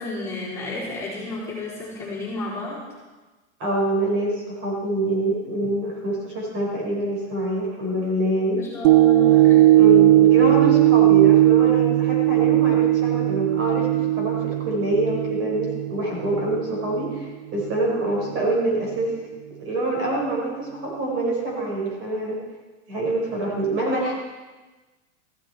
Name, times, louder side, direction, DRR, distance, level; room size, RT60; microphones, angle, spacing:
voice 1, 0.0-2.8 8.5-9.6, left 2 dB, 5° left, -9 dB, 4.4 m, -32 dB
voice 2, 3.6-8.6 9.8-19.2 19.6-22.4 22.9-24.1, right 2 dB, 35° right, -2 dB, 5.2 m, -25 dB
sound 1, 8.8-17.2 17.7-17.8, right 14 dB, 65° right, 0.7 m, -18 dB
15.5 x 14.0 x 4.4 m, 1.2 s
supercardioid pair, 155°, 35 cm